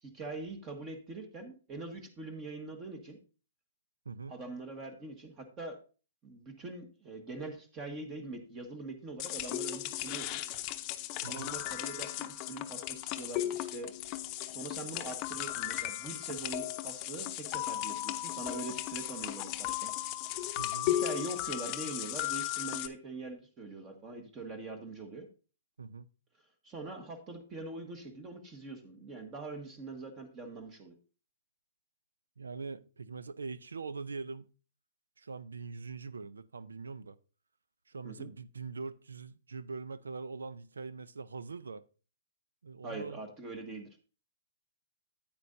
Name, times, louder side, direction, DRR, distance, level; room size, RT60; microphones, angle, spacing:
voice 1, 0.0-3.2 4.3-5.8 6.2-10.4 11.2-13.9 14.5-19.9 20.9-25.3 26.6-31.0 38.0-38.3 42.8-43.9, right 3 dB, 25° right, 1.4 m, -43 dB
voice 2, 4.1-4.4 11.2-11.5 20.6-20.9 25.8-26.1 32.4-34.5 35.2-37.2 37.9-41.8 42.6-43.2, right 4 dB, 90° right, 0.5 m, -42 dB
sound 1, 9.2-22.9, left 14 dB, 35° left, 0.7 m, -36 dB
9.3 x 8.8 x 2.7 m
hypercardioid pair, 135°, 0 cm